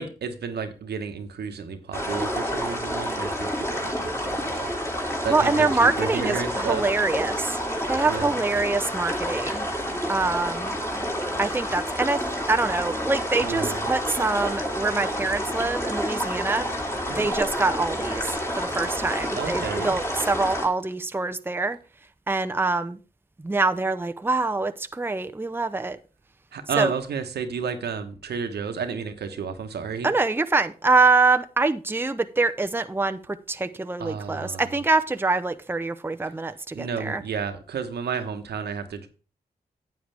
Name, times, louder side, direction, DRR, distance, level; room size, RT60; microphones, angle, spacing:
voice 1, 0.0-4.7 5.2-6.9 8.1-8.3 13.4-13.8 17.1-17.3 19.3-20.0 26.5-30.1 34.0-34.6 36.7-39.1, right 6 dB, 80° right, 1.2 m, -31 dB
sound 1, 1.9-20.7, equal, 15° left, 2.7 m, -29 dB
voice 2, 5.3-7.6 7.9-9.7 10.1-10.7 11.4-16.7 17.1-21.8 22.3-23.0 23.4-26.0 26.8-26.9 30.0-37.2, right 3 dB, 15° right, 0.7 m, -25 dB
9.3 x 7.9 x 3.4 m
cardioid pair, 45°, 17 cm